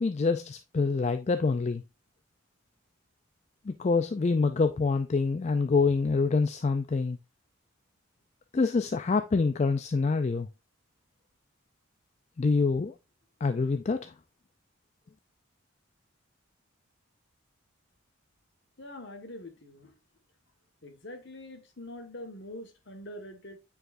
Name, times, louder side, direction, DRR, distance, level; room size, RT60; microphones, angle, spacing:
voice 1, 0.0-1.8 3.7-7.2 8.5-10.5 12.4-12.9 13.4-14.1, left 4 dB, 35° left, 0.3 m, -26 dB
voice 2, 18.8-19.9 20.8-23.6, left 1 dB, 55° left, 1.4 m, -44 dB
8.9 x 4.7 x 2.5 m
head